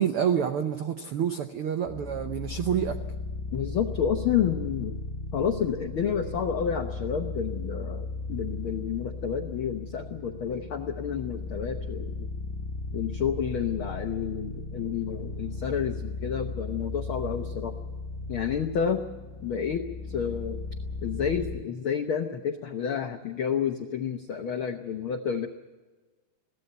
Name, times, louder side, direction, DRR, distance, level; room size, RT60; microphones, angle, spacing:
voice 1, 0.0-3.0, right 8 dB, 85° right, 8 dB, 1.2 m, -28 dB
sound 1, 1.8-21.6, left 3 dB, 25° left, 2.4 m, -36 dB
voice 2, 3.5-5.0 5.3-12.3 12.9-17.7 18.3-19.0 19.4-20.6 21.0-25.5, left 8 dB, 85° left, 6 dB, 1.1 m, -30 dB
22.0 x 17.0 x 8.0 m, 1.3 s
omnidirectional pair, 3.8 m